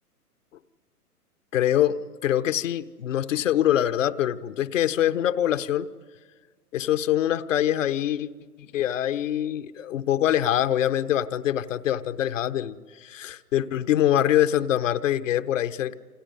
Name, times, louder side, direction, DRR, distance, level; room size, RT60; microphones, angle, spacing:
voice 1, 1.5-2.0 2.2-5.9 6.7-8.3 8.6-15.9, left 11 dB, 55° left, 12 dB, 1.2 m, -24 dB
29.5 x 28.0 x 5.4 m, 1.4 s
hypercardioid pair, 130°, 46 cm